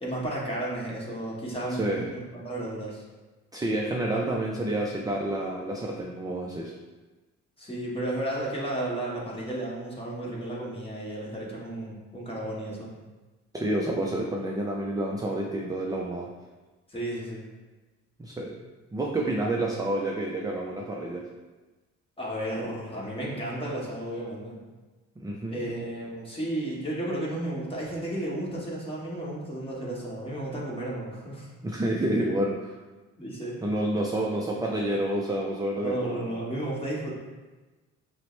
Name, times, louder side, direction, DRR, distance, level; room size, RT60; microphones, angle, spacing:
voice 1, 0.0-3.0 7.6-12.9 16.9-17.4 22.2-24.6 25.5-31.5 33.2-33.6 35.7-37.1, right 1 dB, 20° left, -5 dB, 1.3 m, -33 dB
voice 2, 1.7-2.1 3.5-6.7 13.5-16.3 18.2-18.6 18.9-21.3 25.2-25.6 31.6-32.8 33.6-36.4, right 1 dB, 15° right, -1 dB, 0.4 m, -29 dB
5.9 x 2.1 x 3.2 m, 1.2 s
cardioid pair, 90°, 30 cm